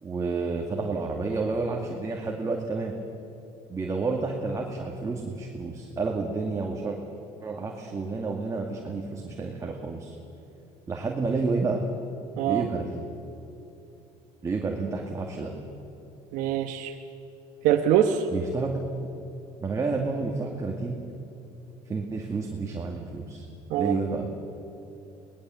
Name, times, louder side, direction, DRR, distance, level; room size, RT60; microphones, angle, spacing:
voice 1, 0.0-3.0 3.7-7.0 7.4-10.2 10.9-11.8 12.5-13.0 14.4-15.5 18.3-18.8 19.6-21.0 21.9-23.4 23.8-24.3, right 3 dB, 25° right, 0 dB, 2.2 m, -30 dB
voice 2, 16.3-16.9 17.6-18.3 23.7-24.0, right 10 dB, 75° right, 4 dB, 1.2 m, -23 dB
23.5 x 19.5 x 7.8 m, 2.8 s
cardioid pair, 125°, 13 cm